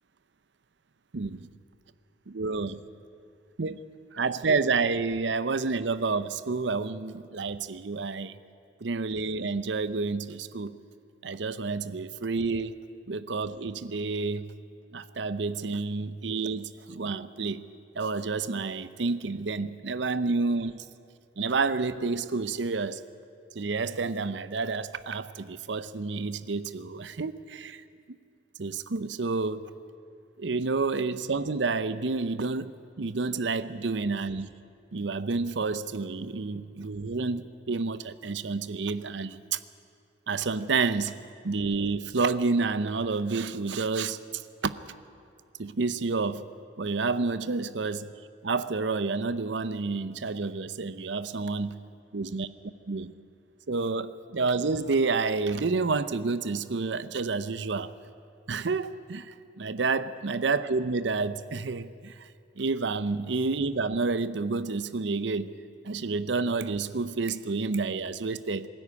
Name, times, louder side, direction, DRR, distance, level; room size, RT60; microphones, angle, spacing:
voice 1, 1.1-1.5 2.3-2.8 3.6-3.8 4.1-8.3 8.8-10.8 11.2-12.7 13.1-14.5 14.9-17.6 17.9-20.8 21.4-23.0 23.5-27.8 28.6-29.7 30.4-34.5 34.9-39.6 40.3-41.1 41.4-44.7 45.6-46.5 46.8-48.1 48.4-51.8 52.1-52.5 52.9-53.1 53.7-57.9 58.5-62.1 62.6-65.5 65.8-68.7, right 4 dB, 75° right, 14 dB, 0.7 m, -29 dB
20.5 x 13.5 x 9.8 m, 2.4 s
head